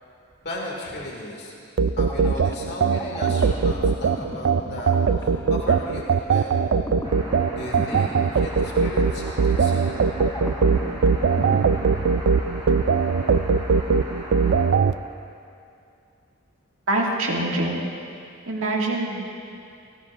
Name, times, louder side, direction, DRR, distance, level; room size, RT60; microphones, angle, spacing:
voice 1, 0.4-1.5 2.0-6.5 7.5-10.1 11.4-11.5, left 1 dB, 50° left, -2 dB, 2.2 m, -35 dB
sound 1, 1.8-14.9, right 5 dB, 55° right, 0.3 m, -20 dB
sound 2, 2.1-12.8, left 1 dB, 15° left, 0.5 m, -38 dB
sound 3, 7.0-14.7, right 1 dB, 25° right, 3.2 m, -38 dB
voice 2, 16.9-17.9 18.5-19.2, right 2 dB, 85° right, -2 dB, 2.0 m, -24 dB
19.0 x 17.0 x 2.5 m, 2.4 s
head